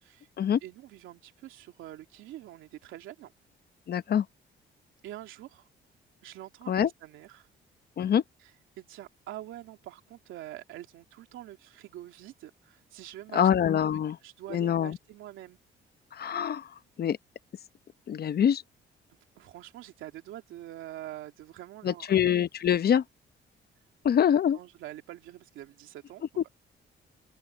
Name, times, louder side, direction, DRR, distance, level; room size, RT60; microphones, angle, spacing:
voice 1, 0.6-3.3 5.0-5.7 6.2-7.5 8.8-13.5 14.2-15.6 19.4-22.2 24.5-26.2, right 14 dB, 90° right, 2.7 m, -45 dB
voice 2, 3.9-4.3 6.7-6.9 8.0-8.2 13.3-14.2 14.5-15.0 16.1-16.7 17.0-17.2 18.1-18.6 21.8-23.0 24.0-24.6 26.4-26.5, left 9 dB, 50° left, 0.9 m, -24 dB
open air
cardioid pair, 90°, 20 cm